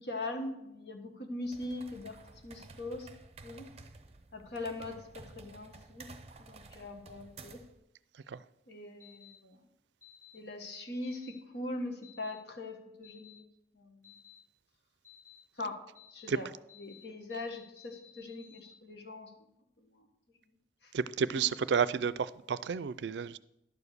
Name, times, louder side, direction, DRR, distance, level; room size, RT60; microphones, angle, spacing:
voice 1, 0.0-2.2 2.4-3.1 3.4-3.7 4.3-6.1 6.4-7.6 8.7-9.6 10.3-13.4 13.7-14.2 15.5-15.8 16.1-16.5 16.8-19.5 19.8-20.1 20.8-20.9, left 2 dB, 80° left, 1.6 m, -41 dB
sound 1, 1.4-7.8, right 3 dB, 35° right, 0.7 m, -53 dB
sound 2, 9.0-9.3 10.0-10.3 11.0-11.3 12.0-12.3 13.0-13.3 14.0-14.4 15.0-15.4 16.0-16.3 16.7-17.0 17.3-18.7, left 11 dB, 40° left, 3.2 m, -56 dB
voice 2, 20.9-23.4, right 6 dB, 85° right, 0.4 m, -31 dB
11.5 x 4.9 x 6.7 m
head